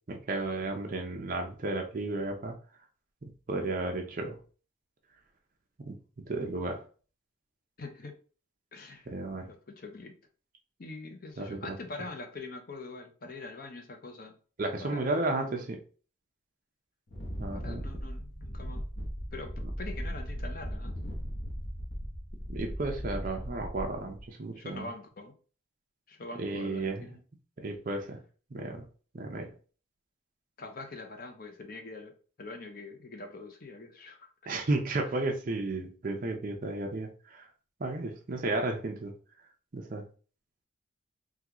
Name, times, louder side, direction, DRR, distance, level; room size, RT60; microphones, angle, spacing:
voice 1, 0.1-2.5 3.2-4.4 5.9-6.0 6.3-6.8 9.1-9.5 11.4-11.8 14.6-15.8 17.4-17.8 22.5-24.9 26.4-27.1 27.6-28.2 28.5-28.8 29.1-29.5 34.5-37.5 37.8-39.1 39.7-40.0, right 2 dB, 45° right, 2 dB, 0.5 m, -33 dB
voice 2, 7.8-8.2 8.7-9.1 9.5-10.1 10.8-14.4 14.8-15.7 17.5-18.8 19.3-21.0 24.5-25.3 26.1-27.2 30.6-34.3, left 3 dB, 45° left, 6 dB, 0.6 m, -44 dB
Wind, 17.1-24.2, equal, 70° left, 0.9 m, -38 dB
3.6 x 2.3 x 2.9 m, 0.39 s
head